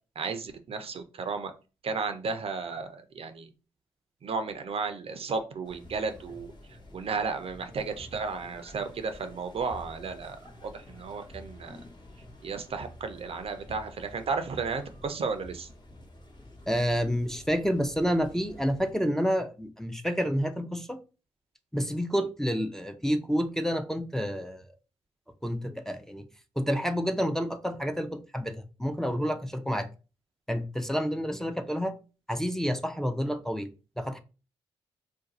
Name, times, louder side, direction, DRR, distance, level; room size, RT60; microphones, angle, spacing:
voice 1, 0.2-1.5 1.8-3.5 4.2-6.5 6.9-11.8 12.4-15.7, right 4 dB, 50° right, 8 dB, 0.5 m, -33 dB
sound 1, 5.6-18.9, left 1 dB, 35° left, 0.9 m, -49 dB
voice 2, 16.7-21.0 21.7-24.7 25.4-26.2 26.6-29.9 30.5-31.9 32.3-33.7 34.0-34.2, equal, 5° left, 6 dB, 0.5 m, -29 dB
2.5 x 2.2 x 3.9 m, 0.33 s
hypercardioid pair, 45°, 12 cm